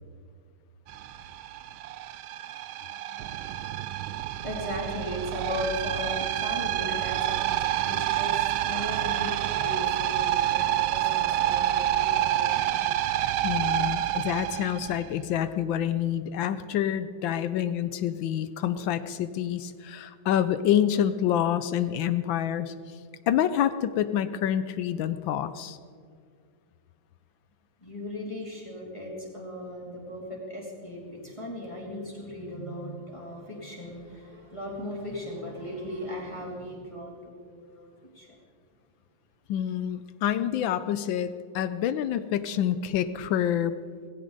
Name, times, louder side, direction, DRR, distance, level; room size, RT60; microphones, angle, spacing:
sound 1, 0.9-15.4, right 12 dB, 85° right, 1.4 m, -28 dB
voice 1, 3.9-12.7 27.8-37.9 38.1-38.4, left 1 dB, 15° left, -3 dB, 2.8 m, -37 dB
voice 2, 13.4-22.7 23.3-25.8 39.5-43.7, left 10 dB, 75° left, 12 dB, 1.3 m, -27 dB
18.5 x 16.0 x 4.0 m, 2.2 s
omnidirectional pair, 2.2 m